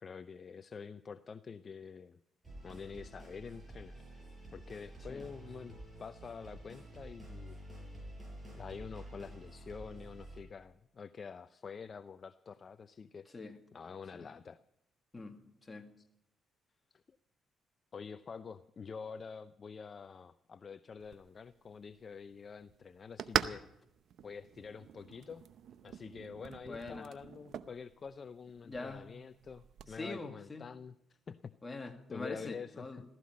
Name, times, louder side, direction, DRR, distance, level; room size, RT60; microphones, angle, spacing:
voice 1, 0.0-2.2 2.6-4.0 4.5-7.6 8.6-14.6 16.0-16.1 17.1-17.2 17.9-23.6 24.2-25.4 25.8-31.6 32.1-33.0, left 5 dB, 40° left, 0.5 m, -47 dB
sound 1, 2.4-10.4, right 1 dB, 20° right, 7.5 m, -50 dB
voice 2, 15.1-15.9 26.7-27.1 28.6-29.1 29.8-30.6 31.6-33.0, left 3 dB, 25° left, 2.0 m, -44 dB
sound 2, 21.0-30.0, right 9 dB, 70° right, 0.7 m, -43 dB
15.5 x 15.0 x 5.3 m
cardioid pair, 90°, 0 cm